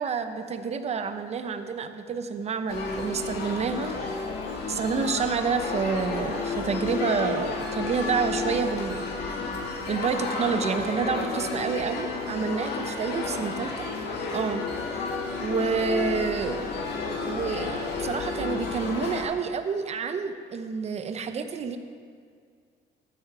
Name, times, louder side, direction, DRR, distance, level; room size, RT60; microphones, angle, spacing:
voice 1, 0.0-3.9 4.7-9.1 9.9-13.9 14.3-15.1 15.4-16.6 17.2-21.8, right 5 dB, 40° right, 8 dB, 0.9 m, -29 dB
sound 1, 2.7-19.2, left 4 dB, 75° left, 1.9 m, -31 dB
13.5 x 8.8 x 4.8 m, 2.1 s
cardioid pair, 110°, 17 cm